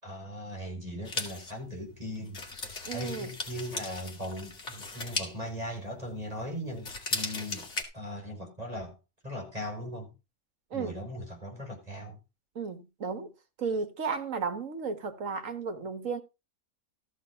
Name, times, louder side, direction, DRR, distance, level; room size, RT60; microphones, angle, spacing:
voice 1, 0.0-2.4 2.9-7.7 7.9-9.0 9.2-10.1 10.7-12.2, equal, 25° right, 5.1 m, -39 dB
sound 1, 1.1-6.4 6.7-7.8, left 3 dB, 55° left, 2.6 m, -37 dB
voice 2, 2.8-3.3 10.7-11.0 12.5-13.3 13.6-16.2, right 5 dB, 65° right, 1.7 m, -34 dB
14.0 x 5.7 x 5.7 m
omnidirectional pair, 1.5 m